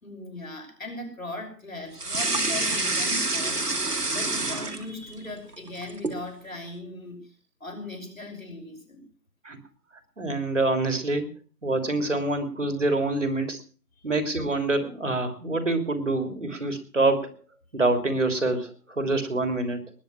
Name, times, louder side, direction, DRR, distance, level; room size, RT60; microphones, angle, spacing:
voice 1, 0.0-7.3 7.6-9.1 14.0-14.1, left 2 dB, 55° left, 4 dB, 5.9 m, -39 dB
sound 1, 2.0-5.2 5.5-6.2, right 2 dB, 70° right, 3.3 m, -27 dB
voice 2, 10.2-11.3 11.6-13.6 14.0-17.3 17.7-19.8, right 2 dB, 50° right, 8 dB, 3.3 m, -26 dB
20.5 x 10.5 x 6.0 m, 0.38 s
figure-of-eight pair, 180°, 48 cm